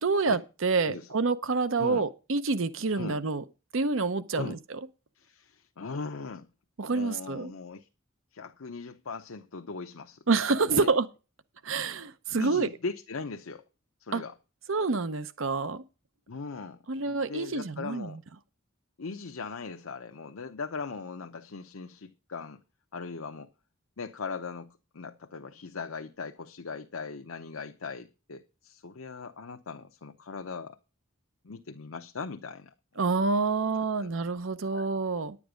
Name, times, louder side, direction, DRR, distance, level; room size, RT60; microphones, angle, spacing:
voice 1, 0.0-3.4 3.7-4.8 6.8-7.5 10.3-11.1 11.6-12.7 14.1-14.2 14.7-15.8 16.9-18.2 33.0-35.4, right 4 dB, 65° right, 0.7 m, -27 dB
voice 2, 5.1-6.5 6.9-7.9 8.3-10.2 10.7-10.9 12.4-13.6 14.0-14.4 16.3-18.2 19.0-22.6 22.9-23.5 24.0-30.8 31.4-32.7 33.7-34.1 34.7-34.9, left 4 dB, 80° left, 0.8 m, -39 dB
10.5 x 8.5 x 5.0 m
head